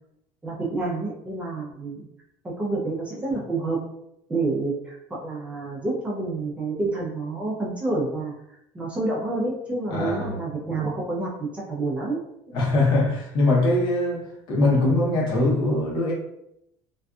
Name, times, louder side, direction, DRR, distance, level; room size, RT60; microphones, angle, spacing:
voice 1, 0.4-2.0 2.6-3.8 4.3-8.3 8.7-12.2, right 3 dB, 10° right, 0.5 m, -28 dB
voice 2, 9.9-10.4 12.5-16.1, left 2 dB, 45° left, 0.8 m, -22 dB
2.5 x 2.3 x 2.3 m
cardioid pair, 150°, 10 cm